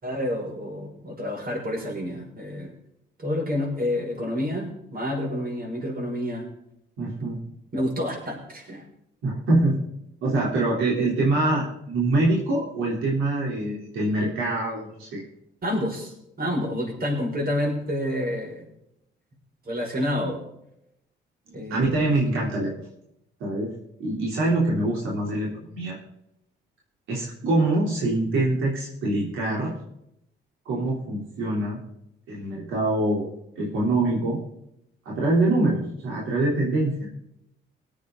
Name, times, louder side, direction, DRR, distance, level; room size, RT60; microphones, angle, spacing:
voice 1, 0.0-2.7 3.2-6.5 7.7-8.8 15.6-18.7 19.7-20.4 21.5-22.1, left 1 dB, 50° right, 0 dB, 5.9 m, -29 dB
voice 2, 7.0-7.4 9.2-9.8 10.2-15.2 21.7-22.9 23.4-23.7 24.0-25.5 25.7-26.0 27.1-29.8 30.7-31.8 32.3-33.3 33.6-34.4 35.1-37.1, right 2 dB, 85° right, -4 dB, 3.5 m, -24 dB
19.5 x 8.3 x 3.9 m, 0.81 s
cardioid pair, 90°, 20 cm